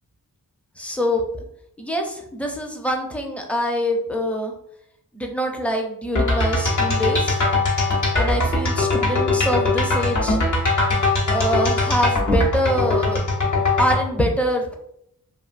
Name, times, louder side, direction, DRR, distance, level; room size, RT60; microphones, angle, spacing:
voice 1, 0.8-1.2 1.8-4.5 5.1-7.4 8.1-10.4 11.3-13.2 13.8-14.7, equal, 5° left, 3 dB, 0.6 m, -24 dB
sound 1, 6.2-14.0, left 2 dB, 50° left, 1.0 m, -21 dB
2.6 x 2.4 x 2.5 m, 0.72 s
cardioid pair, 40°, 38 cm